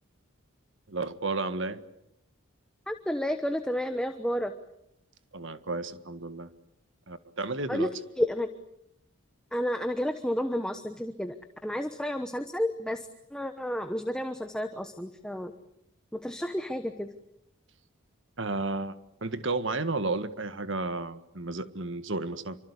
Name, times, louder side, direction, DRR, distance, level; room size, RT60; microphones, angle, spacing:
voice 1, 0.9-1.8 5.3-6.5 7.1-7.9 18.4-18.9 19.2-22.6, right 3 dB, 60° right, 11 dB, 1.7 m, -32 dB
voice 2, 2.9-4.5 7.7-7.9 8.2-8.5 9.5-11.3 11.6-15.5 16.1-17.1, equal, 5° left, 7 dB, 1.1 m, -31 dB
28.0 x 25.5 x 8.4 m, 0.78 s
head